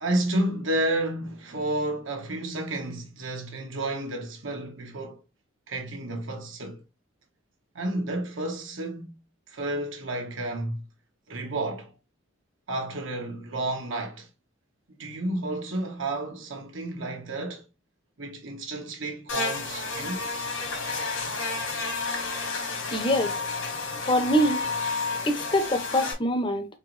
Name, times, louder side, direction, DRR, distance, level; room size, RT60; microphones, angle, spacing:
voice 1, 0.0-5.2 5.7-6.8 7.7-9.2 9.5-10.8 11.3-11.9 12.7-14.3 15.0-17.7 18.2-20.3, right 1 dB, 75° right, 1.2 m, -31 dB
Buzz, 19.3-26.1, left 3 dB, 75° left, 1.5 m, -31 dB
voice 2, 22.9-23.4 24.1-24.6 25.3-26.7, equal, 25° left, 0.7 m, -24 dB
4.5 x 2.6 x 3.1 m
head